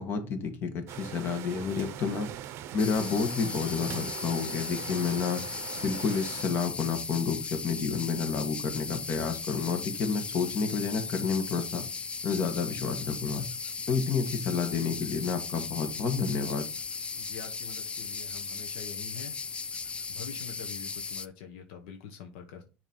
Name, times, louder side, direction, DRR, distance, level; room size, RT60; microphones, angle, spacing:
voice 1, 0.0-2.3 2.7-5.4 5.8-11.9 12.2-13.5 13.9-16.7, left 5 dB, 45° left, 5 dB, 1.6 m, -30 dB
sound 1, 0.9-6.4, right 11 dB, 55° right, 0.6 m, -41 dB
sound 2, 2.8-21.3, left 5 dB, 20° left, 0.4 m, -37 dB
voice 2, 17.2-19.4 20.1-22.6, left 7 dB, 80° left, 4 dB, 1.0 m, -45 dB
7.2 x 3.0 x 5.3 m, 0.33 s
supercardioid pair, 110°, 5 cm